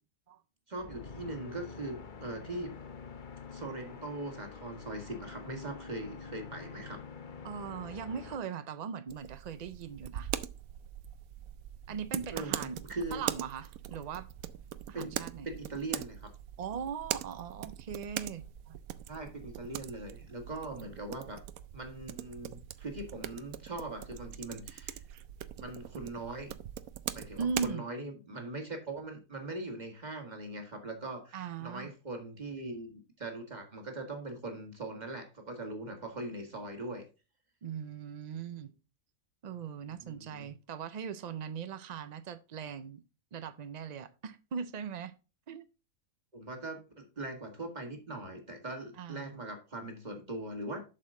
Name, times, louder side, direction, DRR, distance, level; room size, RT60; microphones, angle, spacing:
voice 1, 0.7-2.7 3.5-7.0 12.3-13.2 14.9-15.1 15.4-16.3 19.1-21.4 21.7-25.0 25.6-26.5 27.1-37.1 40.0-40.5 46.3-50.8, right 2 dB, 30° right, 1.8 m, -41 dB
sound 1, 0.8-8.4, left 5 dB, 45° left, 0.8 m, -47 dB
voice 2, 7.4-10.3 11.9-12.8 13.1-14.3 14.9-15.5 16.6-18.8 27.4-27.8 31.3-31.9 37.6-38.7 39.4-43.0 43.3-45.1 45.5-45.6 49.0-49.4, right 6 dB, 70° right, 0.4 m, -39 dB
sound 2, 9.1-27.7, right 11 dB, 90° right, 1.1 m, -42 dB
7.6 x 6.4 x 3.7 m
omnidirectional pair, 1.5 m